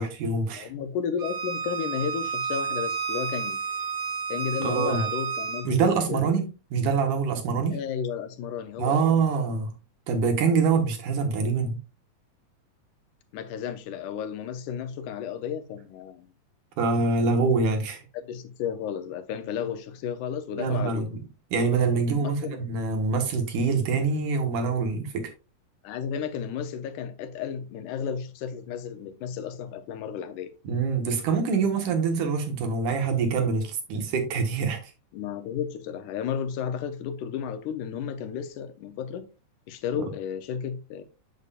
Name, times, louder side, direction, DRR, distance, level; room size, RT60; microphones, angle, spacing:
voice 1, 0.0-0.7 4.6-5.0 5.6-7.8 8.8-9.7 10.1-11.8 16.8-18.0 20.6-21.2 21.5-25.3 30.6-34.9, right 4 dB, 85° right, 2.9 m, -25 dB
voice 2, 0.5-3.6 4.3-6.4 7.7-9.0 13.3-16.3 18.1-21.1 22.1-22.6 25.8-30.5 35.1-39.2 39.7-41.0, left 8 dB, 90° left, 2.3 m, -33 dB
Bowed string instrument, 1.2-5.6, right 6 dB, 50° right, 1.4 m, -31 dB
7.9 x 6.8 x 2.5 m
omnidirectional pair, 3.5 m